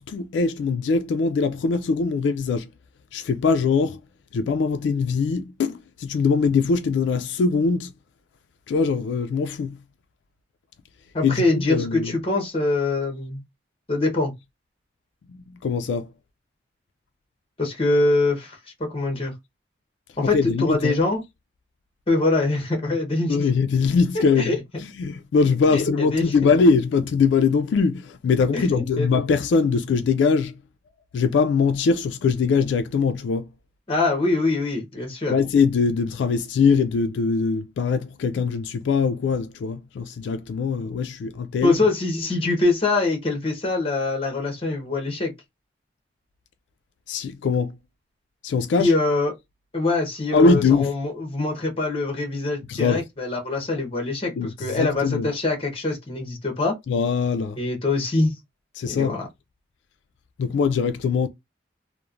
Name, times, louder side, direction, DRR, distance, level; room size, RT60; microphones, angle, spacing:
voice 1, 0.0-2.7 3.1-4.0 4.3-7.9 8.7-9.8 11.2-12.1 15.3-16.1 20.2-21.0 23.3-30.6 31.1-33.5 35.3-41.8 47.1-47.8 48.4-48.9 50.3-50.9 52.7-53.1 54.4-55.3 56.9-57.6 58.8-59.2 60.4-61.3, left 5 dB, 80° left, 0.3 m, -22 dB
voice 2, 11.1-13.4 13.9-14.3 17.6-19.3 20.2-21.2 22.1-23.3 24.4-24.6 25.7-26.2 28.5-29.1 33.9-35.3 41.6-45.3 48.8-49.3 49.7-56.8 57.6-58.3 58.8-59.3, left 2 dB, 30° left, 0.8 m, -24 dB
3.0 x 2.0 x 2.4 m
head